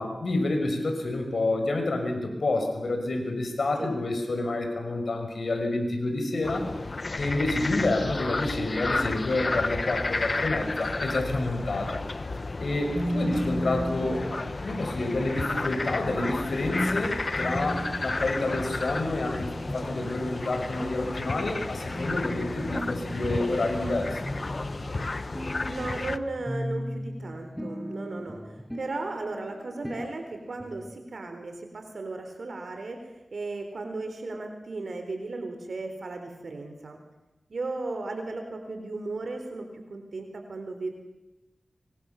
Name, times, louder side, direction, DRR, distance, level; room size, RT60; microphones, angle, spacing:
voice 1, 0.0-6.7 7.2-12.0 12.6-14.3 14.6-24.4, left 2 dB, 75° left, 4 dB, 6.0 m, -28 dB
sound 1, 6.4-26.2, left 3 dB, 50° left, 1.1 m, -32 dB
sound 2, 13.0-30.9, equal, 5° left, 6.7 m, -37 dB
voice 2, 25.7-37.0 37.5-40.9, right 3 dB, 75° right, 5 dB, 4.1 m, -36 dB
25.0 x 25.0 x 7.2 m, 1.0 s
cardioid pair, 50°, 0 cm